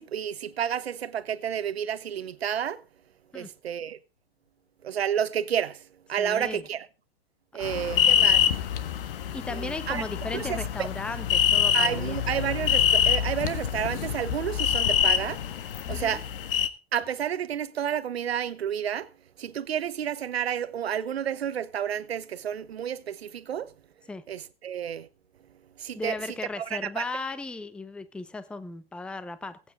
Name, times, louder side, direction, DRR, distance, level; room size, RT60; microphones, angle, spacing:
voice 1, 0.0-2.8 3.3-4.0 4.8-5.8 6.1-6.9 7.5-8.5 9.5-10.1 10.3-10.9 11.7-15.4 15.9-16.2 16.9-19.1 19.4-23.7 24.3-25.1 25.8-26.2 26.6-27.0, right 9 dB, 85° right, 1.1 m, -30 dB
voice 2, 6.2-6.6 7.5-7.8 9.3-12.2 15.9-16.2 24.1-24.2 26.0-29.6, left 3 dB, 5° left, 0.7 m, -36 dB
sound 1, 7.6-16.7, left 9 dB, 65° left, 1.5 m, -25 dB
20.0 x 9.0 x 3.6 m
hypercardioid pair, 125°, 30 cm